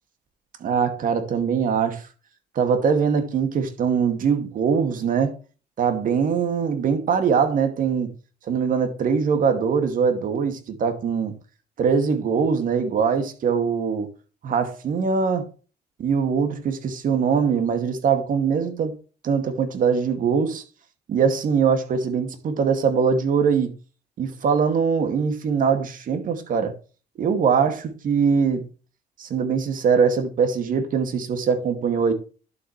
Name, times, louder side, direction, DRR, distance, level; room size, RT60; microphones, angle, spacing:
voice 1, 0.6-2.0 2.6-5.3 5.8-8.1 8.5-11.4 11.8-14.1 14.4-15.5 16.0-18.9 19.2-20.6 21.1-23.7 24.2-26.7 27.2-28.7 29.2-32.1, right 6 dB, 55° right, 2.4 m, -22 dB
11.5 x 7.5 x 3.3 m
cardioid pair, 110°, 17 cm